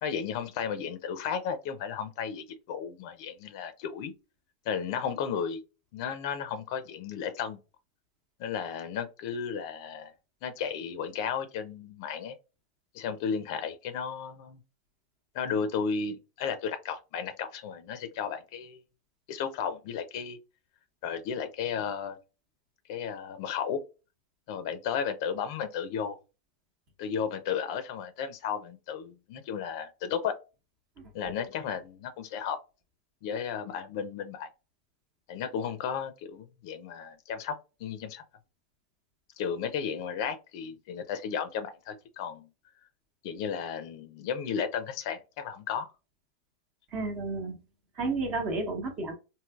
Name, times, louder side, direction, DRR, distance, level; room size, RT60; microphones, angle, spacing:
voice 1, 0.0-4.1 4.7-5.6 5.9-7.6 8.4-10.1 10.4-12.4 12.9-14.6 15.3-18.8 19.3-20.4 21.0-22.2 22.9-23.8 24.5-26.2 27.0-30.4 31.1-32.6 33.2-34.5 35.3-38.2 39.4-42.5 43.2-45.9, left 7 dB, 60° left, 0.4 m, -34 dB
voice 2, 46.9-47.6 48.0-49.1, right 3 dB, 35° right, 0.9 m, -31 dB
3.1 x 2.7 x 2.3 m
hypercardioid pair, 125°, 2 cm